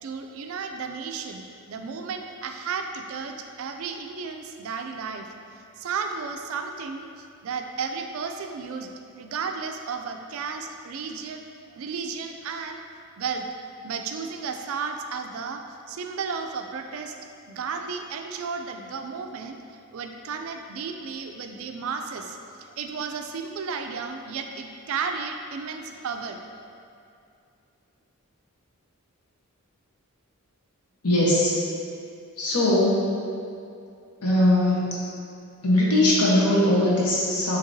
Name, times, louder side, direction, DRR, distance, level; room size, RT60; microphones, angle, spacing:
voice 1, 0.0-5.3 5.8-8.9 9.2-11.4 11.7-12.8 13.2-13.5 13.8-19.6 19.9-26.4, right 5 dB, 65° right, 5 dB, 0.3 m, -33 dB
voice 2, 31.0-31.5 32.4-33.1 34.2-35.0 35.6-37.6, left 1 dB, 85° left, -6 dB, 1.1 m, -20 dB
6.5 x 2.9 x 2.7 m, 2.5 s
head